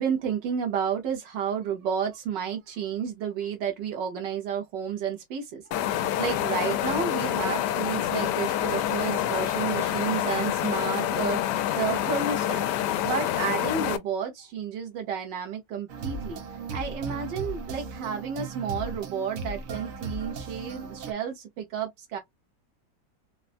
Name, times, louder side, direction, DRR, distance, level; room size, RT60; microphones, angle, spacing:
voice 1, 0.0-12.7 13.0-16.4 16.7-22.2, right 7 dB, 80° right, 1.5 m, -31 dB
sound 1, 5.7-14.0, left 12 dB, 75° left, 1.1 m, -27 dB
sound 2, 15.9-21.1, right 3 dB, 60° right, 1.0 m, -36 dB
3.9 x 2.2 x 2.4 m
omnidirectional pair, 1.9 m